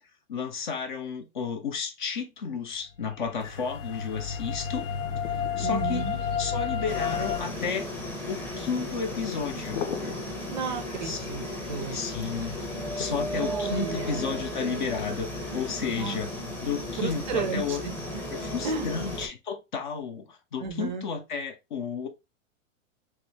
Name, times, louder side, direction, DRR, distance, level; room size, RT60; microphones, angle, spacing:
voice 1, 0.3-4.9 5.3-6.1 6.4-7.9 8.3-9.8 11.0-11.2 11.9-12.6 13.0-16.3 16.6-17.8 18.3-22.1, left 5 dB, 40° left, 0.5 m, -32 dB
sound 1, 3.1-7.4, left 7 dB, 90° left, 1.0 m, -31 dB
sound 2, 3.4-18.5, left 7 dB, 65° left, 0.8 m, -44 dB
voice 2, 5.6-6.2 10.5-12.0 13.3-14.3 16.0-16.2 17.0-17.8 18.6-18.9 20.6-21.1, right 5 dB, 35° right, 0.4 m, -33 dB
sound 3, 6.9-19.3, equal, 10° left, 0.8 m, -35 dB
3.5 x 3.1 x 3.1 m
supercardioid pair, 175°, 39 cm